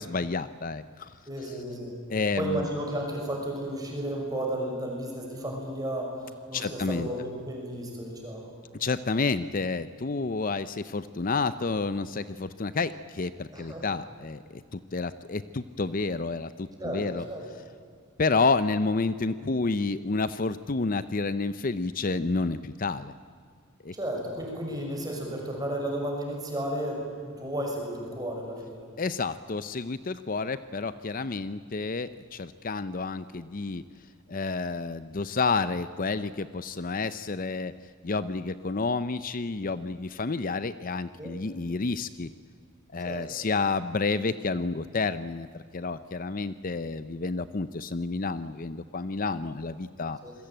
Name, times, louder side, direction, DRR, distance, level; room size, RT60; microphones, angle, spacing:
voice 1, 0.0-1.1 2.1-2.7 6.5-7.1 8.8-14.4 14.7-17.2 18.2-23.1 23.8-23.9 29.0-33.8 34.3-37.7 38.0-42.3 42.9-50.2, left 3 dB, 40° left, 13 dB, 0.6 m, -30 dB
voice 2, 1.3-1.9 2.4-6.2 6.5-8.5 13.5-13.9 16.8-17.4 23.9-28.8 41.2-41.3 43.0-43.3 50.2-50.3, right 1 dB, 15° right, 0 dB, 6.2 m, -33 dB
27.5 x 21.5 x 9.0 m, 2.1 s
head